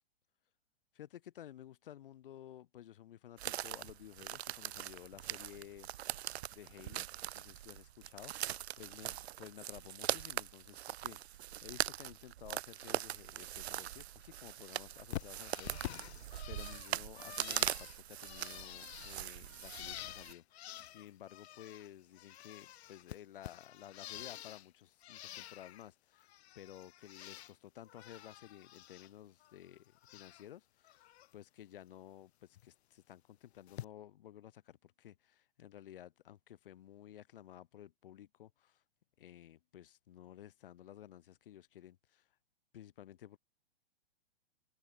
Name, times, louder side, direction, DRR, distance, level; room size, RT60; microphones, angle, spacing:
voice 1, 0.9-5.9 6.5-7.1 7.3-8.3 8.8-16.1 16.5-26.3 26.6-31.1 31.3-38.8 39.2-42.3 42.7-43.4, left 11 dB, 55° left, 1.9 m, -54 dB
sound 1, 3.4-20.3, right 13 dB, 80° right, 0.5 m, -41 dB
Bird, 15.1-21.9 22.2-24.7 25.0-25.9 26.2-27.5 27.8-29.1 29.4-30.5 30.8-31.3 32.6-32.7 33.7-33.8, left 13 dB, 80° left, 0.5 m, -49 dB
hypercardioid pair, 165°, 32 cm